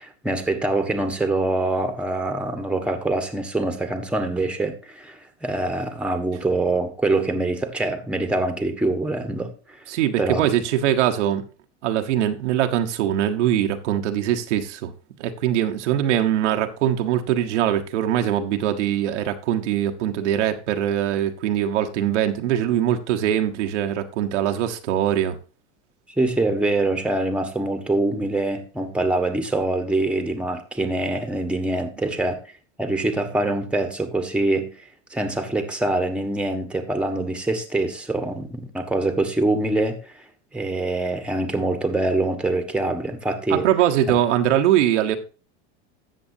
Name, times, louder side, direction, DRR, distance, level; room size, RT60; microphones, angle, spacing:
voice 1, 0.0-9.8 10.2-10.4 26.2-32.4 32.8-34.8 35.1-40.2 40.5-43.7 44.1-44.2, right 2 dB, 5° right, 1.3 m, -24 dB
voice 2, 9.9-11.4 11.8-14.9 15.2-25.4 43.5-45.2, right 11 dB, 85° right, 1.2 m, -22 dB
13.0 x 7.8 x 2.7 m
supercardioid pair, 120°, 35 cm